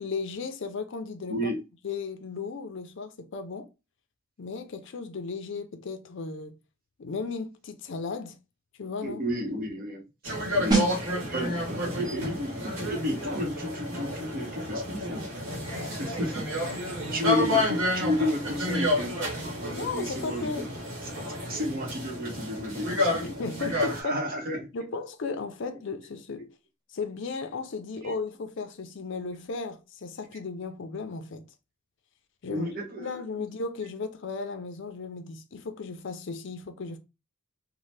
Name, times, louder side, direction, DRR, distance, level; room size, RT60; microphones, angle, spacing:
voice 1, 0.0-1.5 1.8-3.7 4.4-6.6 7.0-8.4 8.8-9.2 10.5-10.8 15.7-16.0 16.8-17.2 19.7-20.7 23.2-24.2 24.7-26.5 26.9-31.4 32.4-32.7 33.0-37.0, left 4 dB, 60° left, 0.5 m, -35 dB
voice 2, 1.3-1.6 9.0-10.0 10.5-15.3 16.0-19.2 19.6-20.7 21.3-23.4 23.7-24.7 28.0-28.1 32.5-33.5, left 1 dB, 45° right, 0.8 m, -32 dB
sound 1, 10.2-24.0, left 1 dB, 65° right, 1.0 m, -30 dB
sound 2, 10.7-21.2 21.5-21.7, right 3 dB, 20° right, 0.8 m, -36 dB
2.7 x 2.1 x 3.2 m
head